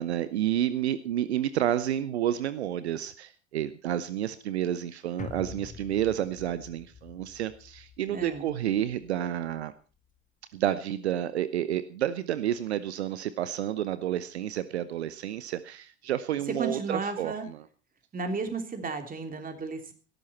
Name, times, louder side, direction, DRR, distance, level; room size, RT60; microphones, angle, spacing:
voice 1, 0.0-9.7 10.5-17.6, right 11 dB, 70° right, 15 dB, 0.9 m, -30 dB
sound 1, 5.2-9.6 10.0-10.1, left 6 dB, 25° left, 2.0 m, -46 dB
voice 2, 8.1-8.5 16.6-17.5 18.1-19.9, right 4 dB, 25° right, 6 dB, 3.2 m, -33 dB
17.5 x 13.0 x 4.3 m, 0.36 s
figure-of-eight pair, 70°, 33 cm